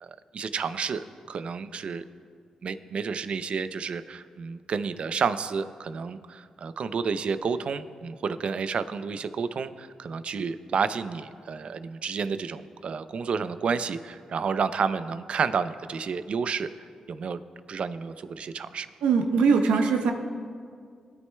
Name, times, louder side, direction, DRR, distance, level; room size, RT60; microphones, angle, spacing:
voice 1, 0.0-2.1 2.6-16.7 17.1-17.4 17.7-18.9, right 5 dB, 65° right, 12 dB, 0.5 m, -30 dB
voice 2, 19.0-20.1, right 5 dB, 90° right, 5 dB, 0.8 m, -21 dB
18.5 x 9.5 x 2.2 m, 2.1 s
supercardioid pair, 55°, 2 cm